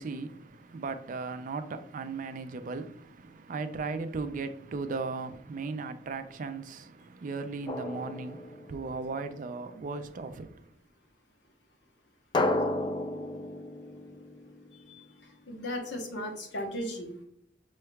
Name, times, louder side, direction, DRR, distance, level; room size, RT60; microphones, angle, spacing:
voice 1, 0.0-10.7, right 4 dB, 45° right, 0.4 m, -37 dB
Drum, 7.7-9.2 12.3-15.1, left 2 dB, 25° left, 0.3 m, -33 dB
voice 2, 15.5-17.2, equal, 75° left, 0.9 m, -36 dB
5.4 x 3.2 x 2.2 m
head